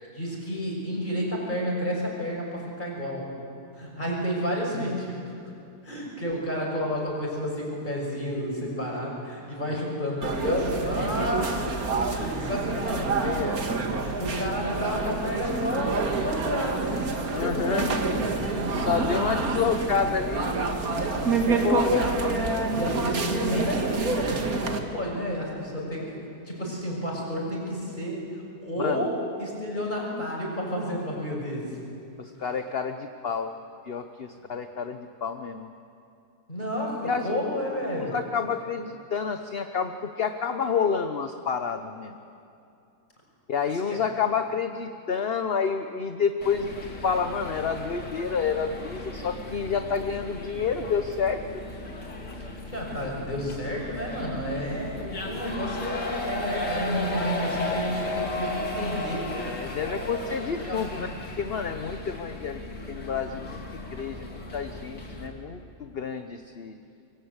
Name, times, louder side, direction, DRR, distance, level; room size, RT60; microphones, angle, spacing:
voice 1, 0.1-3.3 3.8-5.2 5.8-11.6 12.1-13.2 14.0-17.0 17.4-19.6 21.2-22.4 22.7-26.2 26.5-28.3 28.6-31.7 36.5-38.2 43.9-44.0 52.7-59.5 60.6-61.0, equal, 25° left, -2 dB, 6.6 m, -31 dB
sound 1, 10.2-24.8, right 3 dB, 60° right, 2.3 m, -28 dB
voice 2, 12.9-13.6 17.3-17.9 18.6-20.8 21.6-21.9 28.8-29.1 32.2-33.5 33.9-35.7 37.0-37.4 38.0-42.2 43.5-51.4 59.3-61.1 61.4-62.6 62.9-63.6 63.9-66.8, left 6 dB, 45° left, 7 dB, 1.0 m, -29 dB
sound 2, 46.4-65.3, left 2 dB, 90° left, 3.5 m, -35 dB
26.5 x 24.0 x 8.1 m, 2.6 s
omnidirectional pair, 1.7 m